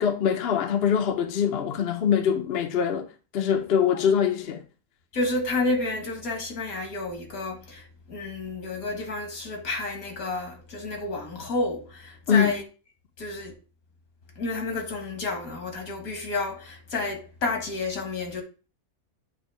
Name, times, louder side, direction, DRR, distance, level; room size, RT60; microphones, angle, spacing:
voice 1, 0.0-3.1 3.3-4.6 12.3-12.6, left 8 dB, 55° left, 0.9 m, -23 dB
voice 2, 5.1-12.6 13.2-13.5 14.4-18.4, left 2 dB, 80° left, 2.0 m, -30 dB
8.2 x 2.8 x 5.4 m
omnidirectional pair, 1.5 m